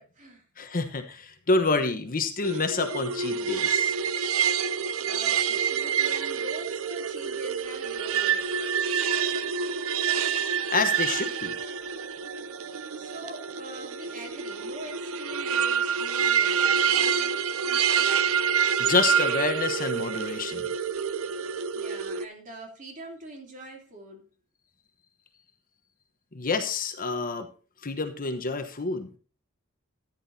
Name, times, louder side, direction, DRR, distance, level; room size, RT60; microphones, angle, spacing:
voice 1, 0.0-0.4 5.0-8.6 12.9-16.8 21.7-24.3, right 1 dB, 35° right, 2 dB, 3.0 m, -43 dB
voice 2, 0.6-3.9 10.7-11.7 18.8-20.7 26.3-27.5 27.8-29.2, left 3 dB, 40° left, 7 dB, 1.1 m, -28 dB
sound 1, 2.4-22.3, right 7 dB, 65° right, 0.6 m, -27 dB
14.0 x 10.0 x 2.8 m, 0.37 s
head